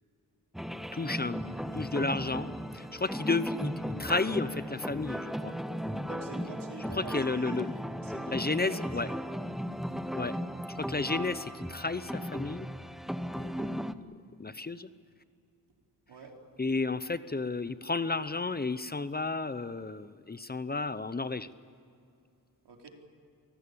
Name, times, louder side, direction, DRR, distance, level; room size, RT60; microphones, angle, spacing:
sound 1, 0.5-13.9, equal, ahead, 0.9 m, -36 dB
voice 1, 0.9-1.4 1.7-5.6 6.9-7.8 8.3-9.1 10.1-10.3 10.7-12.7 13.4-13.8 14.4-14.9 16.6-21.5, left 3 dB, 25° left, 14 dB, 0.8 m, -32 dB
voice 2, 6.0-7.6 8.0-8.9 9.6-9.8 10.1-10.5 16.1-16.3 22.6-22.9, right 3 dB, 85° right, 0 dB, 4.8 m, -47 dB
27.0 x 19.5 x 8.5 m, 2.4 s
wide cardioid pair, 95°, 40 cm